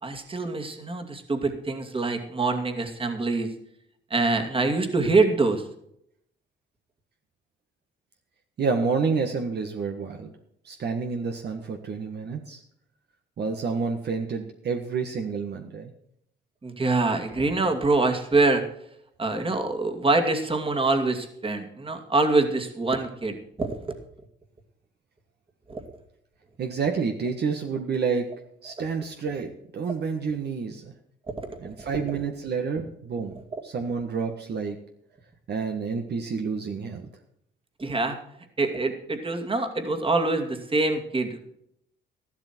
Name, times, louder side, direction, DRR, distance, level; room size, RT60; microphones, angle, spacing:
voice 1, 0.0-3.5 4.1-5.6 16.6-18.6 19.2-23.8 25.7-25.8 31.4-31.9 33.5-33.6 37.8-38.2 38.6-41.4, right 3 dB, 25° right, 5 dB, 2.4 m, -25 dB
voice 2, 8.6-10.3 10.6-12.6 13.4-15.9 26.6-28.3 28.6-30.9 31.6-33.4 33.6-34.8 35.5-37.1, right 5 dB, 55° right, 4 dB, 1.5 m, -29 dB
13.5 x 12.0 x 4.5 m, 0.73 s
cardioid pair, 90°, 20 cm